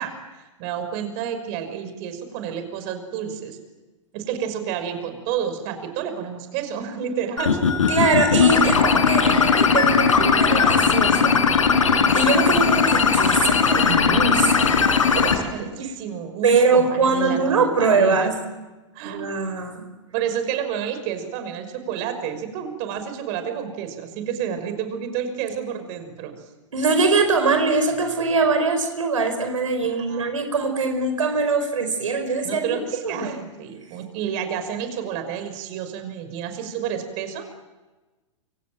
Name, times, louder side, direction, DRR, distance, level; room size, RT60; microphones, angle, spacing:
voice 1, 0.0-3.6 4.1-7.6 8.6-8.7 15.2-18.3 18.9-19.4 20.1-26.3 29.8-30.3 32.4-37.5, right 8 dB, 45° right, 8 dB, 5.8 m, -30 dB
sound 1, 7.4-15.4, left 5 dB, 85° left, 4.7 m, -18 dB
voice 2, 7.9-11.4 12.1-14.8 15.1-15.5 16.4-18.4 19.0-19.9 26.7-32.8 33.0-33.3, right 4 dB, 85° right, 7 dB, 5.0 m, -22 dB
28.5 x 25.0 x 7.7 m, 1.2 s
hypercardioid pair, 115°, 16 cm